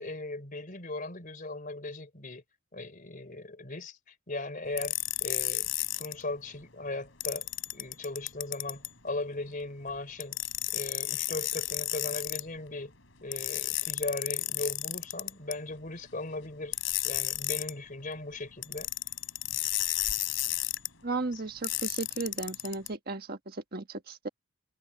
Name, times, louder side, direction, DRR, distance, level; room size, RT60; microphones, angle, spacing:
voice 1, 0.0-2.4 2.7-4.9 5.2-5.7 6.0-7.5 7.7-10.4 10.7-12.9 13.2-16.7 17.0-18.9 21.3-21.4, left 2 dB, 40° left, 3.9 m, -38 dB
sound 1, 4.8-6.1 7.2-8.9 10.2-12.4 13.3-15.5 16.7-17.7 18.6-20.9 21.6-22.9, left 15 dB, 65° left, 7.4 m, -32 dB
voice 2, 21.0-24.3, right 3 dB, 45° right, 1.4 m, -35 dB
head